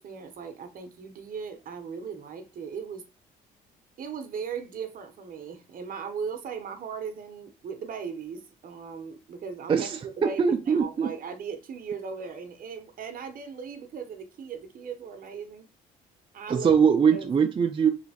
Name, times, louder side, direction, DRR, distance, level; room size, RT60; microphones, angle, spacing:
voice 1, 0.0-3.0 4.0-15.7 16.3-16.8 17.1-17.3, right 6 dB, 55° right, 0.7 m, -38 dB
voice 2, 9.7-11.1 16.5-17.9, right 6 dB, 30° right, 0.4 m, -22 dB
3.1 x 2.9 x 2.8 m
supercardioid pair, 75°, 17 cm